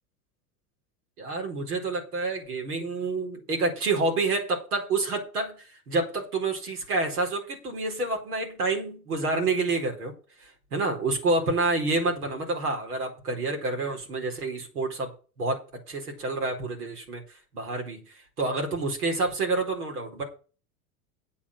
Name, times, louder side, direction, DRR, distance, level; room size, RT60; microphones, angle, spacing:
voice 1, 1.2-10.1 10.4-15.1 15.4-15.6 15.9-17.2 17.5-20.2, right 3 dB, 75° right, 2 dB, 4.4 m, -28 dB
8.7 x 7.3 x 7.2 m, 0.36 s
hypercardioid pair, 90°, 45 cm